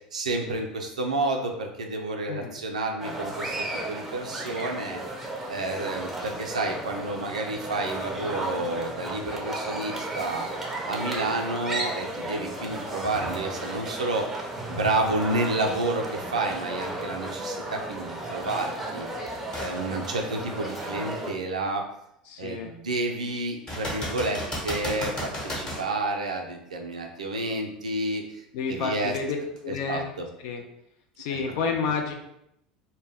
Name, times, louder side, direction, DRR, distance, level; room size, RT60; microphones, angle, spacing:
voice 1, 0.1-5.0 5.5-10.5 10.9-14.3 14.7-19.1 19.6-21.9 22.4-28.4 28.7-29.1 29.7-30.2, right 2 dB, 90° right, 2 dB, 0.4 m, -30 dB
sound 1, 3.0-21.3, right 1 dB, 5° right, 0.6 m, -34 dB
sound 2, 19.5-19.8 20.4-20.5 23.7-25.9 29.6-29.7, equal, 20° left, 1.0 m, -33 dB
voice 2, 22.3-22.7 28.5-29.4 29.6-30.1 30.4-30.6 31.2-32.1, left 5 dB, 65° left, 3 dB, 0.3 m, -30 dB
2.1 x 2.1 x 3.3 m, 0.79 s
hypercardioid pair, 75°, 4 cm